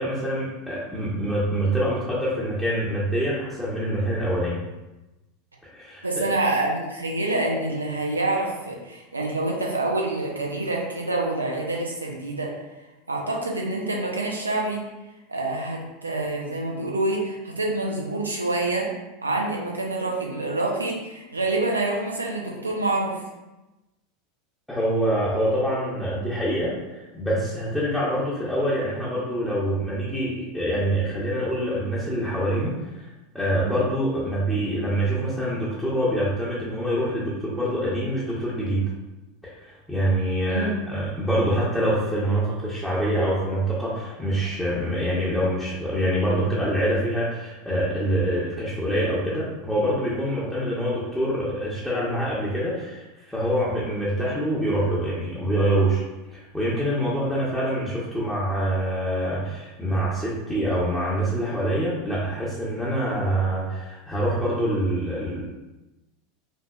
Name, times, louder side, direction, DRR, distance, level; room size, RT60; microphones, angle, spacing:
voice 1, 0.0-4.6 5.7-6.4 24.7-33.1 33.3-38.8 39.4-56.0 56.3-65.4, right 1 dB, 5° left, -9 dB, 0.9 m, -25 dB
voice 2, 6.0-12.5 13.1-14.8 15.3-18.9 19.2-23.2 40.5-40.8, right 2 dB, 80° right, -2 dB, 0.6 m, -26 dB
5.1 x 2.7 x 2.4 m, 1.0 s
figure-of-eight pair, 80°, 0 cm